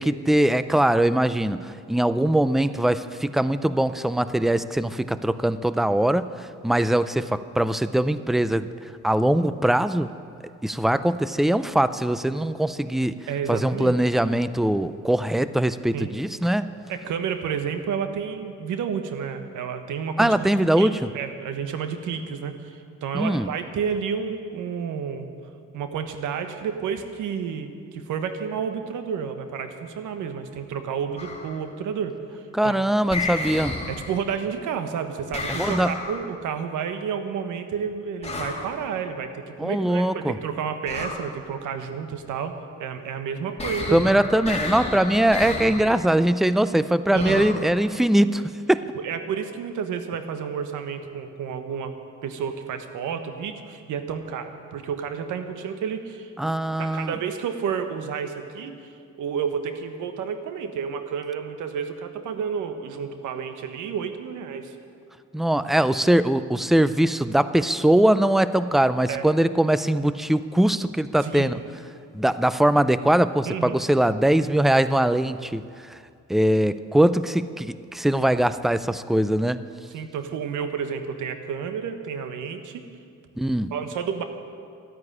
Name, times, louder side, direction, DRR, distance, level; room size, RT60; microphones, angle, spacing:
voice 1, 0.0-8.7 9.0-10.1 10.6-13.2 13.5-16.7 20.2-21.1 23.1-23.5 32.5-33.7 35.6-36.0 39.6-40.4 43.9-48.4 48.7-48.8 56.4-57.1 65.3-71.6 72.1-75.6 76.3-79.6 83.4-83.7, right 1 dB, ahead, 13 dB, 0.5 m, -21 dB
voice 2, 13.3-13.9 15.9-16.1 16.9-20.9 21.1-25.3 25.7-32.8 33.9-44.0 45.4-45.5 47.1-47.5 48.9-51.9 52.2-56.3 56.8-58.9 59.2-64.7 69.1-69.3 71.2-71.5 73.4-73.8 79.9-82.8 83.7-84.2, right 7 dB, 80° right, 8 dB, 1.4 m, -30 dB
sound 1, 31.2-31.6 33.1-34.3 35.3-36.3 38.2-38.8 40.9-41.3 43.6-46.0 47.2-47.7, left 3 dB, 20° left, 3.2 m, -31 dB
13.0 x 9.4 x 10.0 m, 2.4 s
cardioid pair, 90°, 30 cm